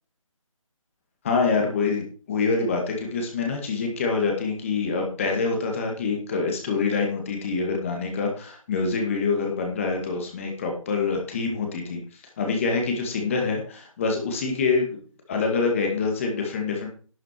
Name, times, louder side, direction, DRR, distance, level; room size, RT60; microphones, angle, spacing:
voice 1, 1.2-15.0 15.3-16.9, left 4 dB, 25° left, 2 dB, 2.0 m, -26 dB
11.0 x 7.9 x 4.6 m, 0.41 s
figure-of-eight pair, 160°, 18 cm